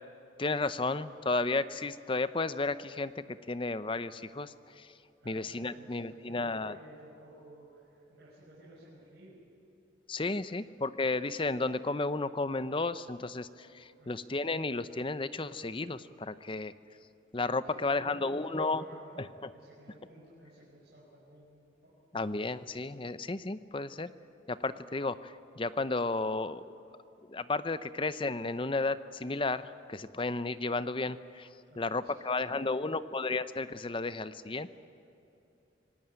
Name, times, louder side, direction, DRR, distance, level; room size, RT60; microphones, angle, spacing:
voice 1, 0.4-4.9 5.2-6.8 10.1-16.7 17.3-18.8 19.2-19.5 22.1-24.1 24.5-26.6 27.3-31.5 31.8-34.7, left 3 dB, 25° left, 14 dB, 0.6 m, -33 dB
voice 2, 5.2-9.4 10.4-10.6 14.0-14.2 17.8-21.9 31.7-33.1, right 1 dB, 55° right, -7 dB, 5.8 m, -55 dB
26.0 x 18.5 x 9.0 m, 2.8 s
head